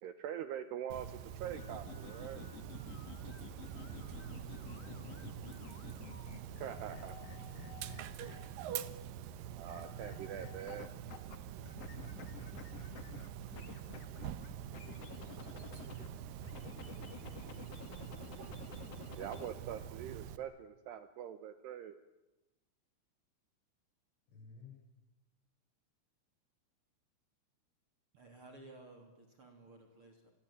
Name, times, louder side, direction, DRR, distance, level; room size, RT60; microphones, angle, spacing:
voice 1, 0.0-2.4 6.6-7.2 9.6-11.0 19.2-22.0, right 10 dB, 75° right, 11 dB, 2.6 m, -44 dB
Dog, 0.9-20.4, right 9 dB, 90° right, 1.9 m, -46 dB
sound 1, 1.5-8.7 9.7-11.4 11.6-16.1 16.4-19.5, left 7 dB, 60° left, 1.7 m, -51 dB
voice 2, 3.8-5.8 6.4-6.6 24.3-24.7, left 4 dB, 75° left, 1 dB, 8.7 m, -55 dB
voice 3, 28.2-30.3, right 2 dB, 30° right, 4 dB, 3.5 m, -56 dB
29.0 x 21.5 x 8.9 m, 1.0 s
omnidirectional pair, 5.7 m